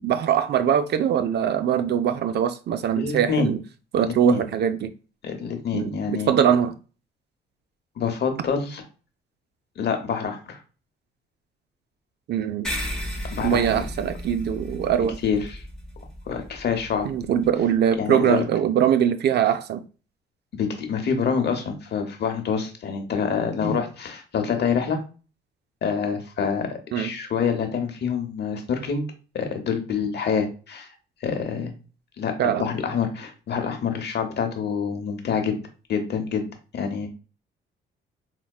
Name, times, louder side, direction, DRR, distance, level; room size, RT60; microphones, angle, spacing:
voice 1, 0.0-3.6 3.9-4.9 5.7-5.9 6.3-6.7 12.3-12.7 13.4-15.2 17.0-19.8 26.9-27.1 32.4-32.7, right 9 dB, 60° right, 0.4 m, -22 dB
voice 2, 2.9-3.5 4.0-4.4 5.2-6.3 8.0-8.9 9.8-10.6 13.3-13.8 15.2-15.6 16.3-17.1 18.0-18.4 20.6-25.0 25.8-26.7 26.9-29.0 29.3-30.9 31.2-31.7 32.2-35.6 35.9-36.4 36.7-37.1, left 6 dB, 55° left, 0.8 m, -26 dB
sound 1, 12.6-17.5, equal, 5° left, 1.0 m, -35 dB
4.4 x 2.1 x 2.3 m
cardioid pair, 90°, 20 cm